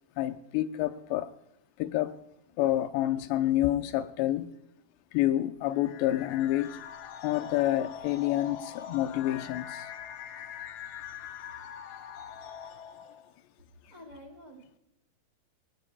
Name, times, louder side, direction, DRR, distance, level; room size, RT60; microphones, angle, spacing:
voice 1, 0.2-1.3 1.8-2.2 2.6-4.5 5.1-6.8 7.2-9.9, left 14 dB, 85° left, 2.9 m, -28 dB
sound 1, 5.7-13.3, left 9 dB, 70° left, 2.4 m, -43 dB
voice 2, 13.9-14.8, equal, 35° right, 2.2 m, -49 dB
28.0 x 18.5 x 2.3 m
omnidirectional pair, 4.9 m